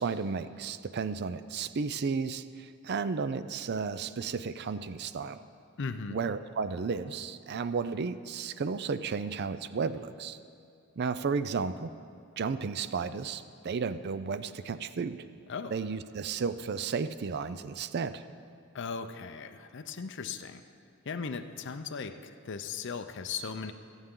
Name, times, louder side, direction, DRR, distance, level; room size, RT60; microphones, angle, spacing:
voice 1, 0.0-5.4 6.1-10.4 11.0-11.9 12.4-15.3 15.7-18.2, right 5 dB, 50° right, 13 dB, 0.4 m, -33 dB
voice 2, 5.8-6.2 15.5-15.8 18.7-20.6 21.1-23.7, left 5 dB, 55° left, 7 dB, 0.6 m, -37 dB
23.0 x 8.1 x 3.8 m, 2.4 s
head